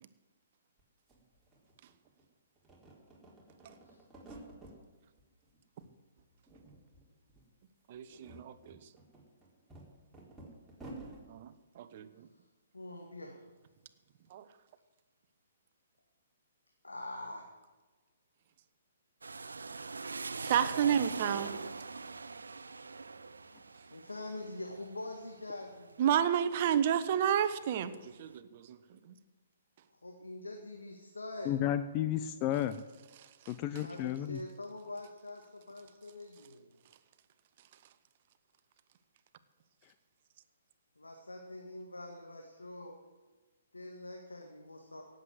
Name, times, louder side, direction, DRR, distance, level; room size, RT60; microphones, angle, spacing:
sound 1, 0.8-0.9 1.1-2.2 2.6-4.8 5.2-5.9 6.2-7.0 7.3-7.5 7.9-11.2, right 2 dB, 5° right, 4.1 m, -52 dB
voice 1, 7.9-8.8 11.3-12.3 14.3-14.5 20.4-21.5 26.0-28.8, right 9 dB, 45° right, 13 dB, 1.0 m, -31 dB
voice 2, 12.7-13.4 16.8-17.4 23.7-26.3 29.9-31.6 33.8-36.7 41.0-43.0 43.7-45.0, left 2 dB, 85° left, 2 dB, 1.9 m, -45 dB
sound 2, 19.2-26.9 27.3-28.1, right 4 dB, 80° right, 0.7 m, -43 dB
voice 3, 31.5-32.8 33.5-34.4, left 11 dB, 30° left, 10 dB, 0.6 m, -32 dB
17.5 x 7.9 x 7.8 m, 1.3 s
figure-of-eight pair, 125°, 0 cm